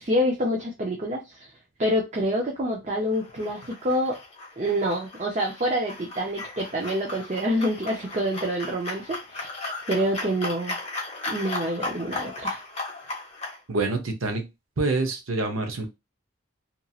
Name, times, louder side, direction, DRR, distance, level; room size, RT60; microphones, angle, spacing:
voice 1, 0.0-1.5 1.8-4.2 4.6-9.5 9.9-10.8 11.3-12.6, equal, 35° right, 0 dB, 0.5 m, -27 dB
sound 1, 3.1-13.6, left 2 dB, 30° left, 1.0 m, -36 dB
voice 2, 13.7-14.5 14.8-15.9, right 3 dB, 85° right, 5 dB, 0.8 m, -26 dB
2.9 x 2.7 x 2.3 m, 0.23 s
head